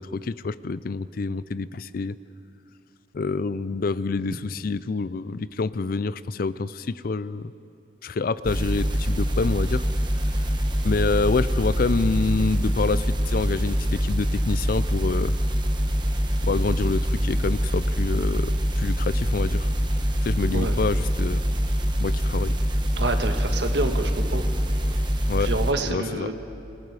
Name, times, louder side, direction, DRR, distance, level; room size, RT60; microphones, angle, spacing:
voice 1, 0.0-2.2 3.1-7.5 8.0-9.9 10.8-15.3 16.4-19.7 20.2-21.4 22.0-22.6 25.3-25.5 25.9-26.3, left 4 dB, 55° left, 17 dB, 0.5 m, -27 dB
sound 1, 8.4-25.7, equal, 25° right, 1.3 m, -24 dB
voice 2, 23.0-24.4 25.4-26.3, right 2 dB, 70° right, 6 dB, 1.6 m, -27 dB
26.5 x 21.0 x 4.9 m, 2.7 s
head